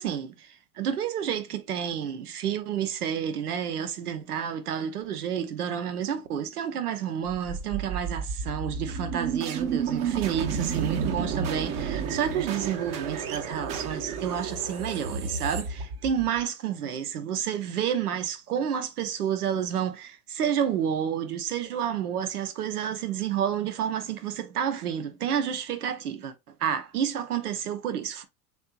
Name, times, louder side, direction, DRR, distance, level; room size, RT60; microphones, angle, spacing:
voice 1, 0.0-26.3 26.6-28.2, right 9 dB, 80° right, 0.8 m, -30 dB
sound 1, 7.3-16.4, right 6 dB, 45° right, 0.9 m, -31 dB
4.3 x 2.8 x 2.4 m
hypercardioid pair, 75°, 45 cm